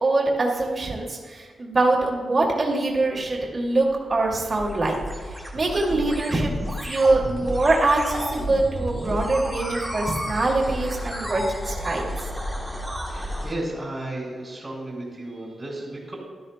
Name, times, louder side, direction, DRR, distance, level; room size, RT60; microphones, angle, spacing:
voice 1, 0.0-5.0 5.5-6.5 6.8-12.1, right 2 dB, 35° right, -1 dB, 2.4 m, -23 dB
sound 1, 3.7-13.5, equal, 5° left, 1.7 m, -32 dB
voice 2, 13.1-16.1, right 1 dB, 15° right, -5 dB, 3.1 m, -33 dB
17.0 x 12.5 x 2.2 m, 1.5 s
wide cardioid pair, 155°, 0 cm